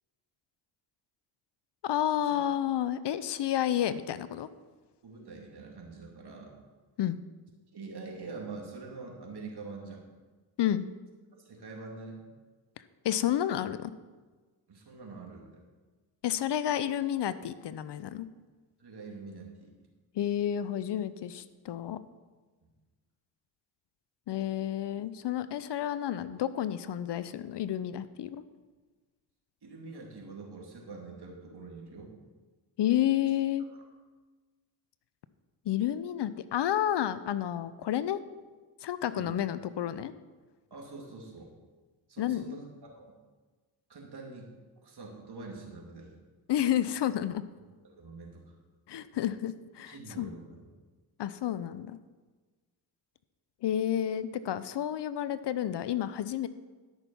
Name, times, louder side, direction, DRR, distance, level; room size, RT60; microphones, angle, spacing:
voice 1, 1.8-4.5 7.0-7.2 10.6-10.8 13.0-13.9 16.2-18.3 20.1-22.0 24.3-28.4 32.8-33.7 35.7-38.2 38.8-40.1 42.2-42.6 46.5-47.4 48.9-50.3 51.2-52.0 53.6-56.5, left 11 dB, 60° left, 14 dB, 0.7 m, -30 dB
voice 2, 5.0-6.6 7.7-10.0 11.4-12.2 14.7-15.6 18.8-19.7 29.6-32.1 39.1-39.4 40.7-41.5 42.1-43.1 43.9-44.5 44.8-46.1 47.9-48.5 49.9-50.6, right 3 dB, 55° right, 0 dB, 2.9 m, -45 dB
13.0 x 6.2 x 5.6 m, 1.3 s
supercardioid pair, 45°, 48 cm